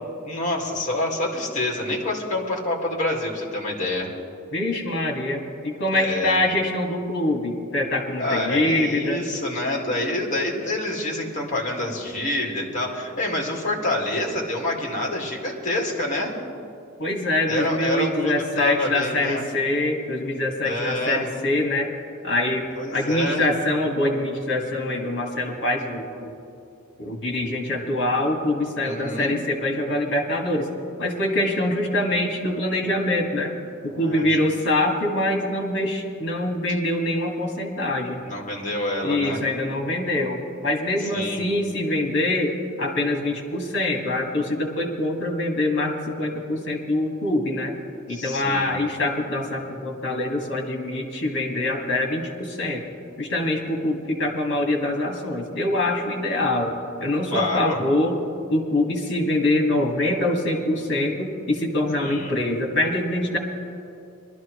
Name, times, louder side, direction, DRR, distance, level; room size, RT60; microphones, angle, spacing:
voice 1, 0.2-4.1 5.9-6.4 8.2-16.3 17.5-19.5 20.6-21.3 22.7-23.5 28.8-29.4 33.9-34.4 38.2-39.4 41.1-41.5 48.1-48.8 57.3-57.8 62.0-62.4, left 1 dB, 35° left, -1 dB, 2.0 m, -27 dB
voice 2, 4.5-9.2 17.0-21.9 22.2-26.3 27.0-30.7 31.0-33.5 33.8-38.2 39.0-47.7 48.1-52.8 53.2-56.7 57.0-58.2 58.5-63.4, left 1 dB, 55° left, 2 dB, 1.9 m, -24 dB
21.5 x 12.5 x 3.1 m, 2.5 s
head